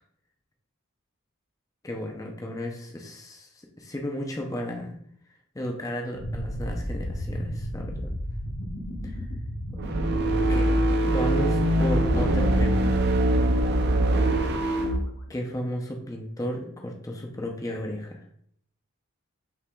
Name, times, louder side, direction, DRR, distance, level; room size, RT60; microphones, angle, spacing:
voice 1, 1.8-3.5 3.8-5.0 5.5-8.1 9.0-9.2 10.5-10.8 11.1-13.3 15.3-18.3, left 1 dB, 15° left, 2 dB, 0.5 m, -34 dB
sound 1, 6.1-15.0, equal, 90° left, 1.0 m, -36 dB
sound 2, 9.8-15.0, right 1 dB, 50° right, 0.4 m, -22 dB
5.6 x 3.7 x 2.3 m, 0.66 s
head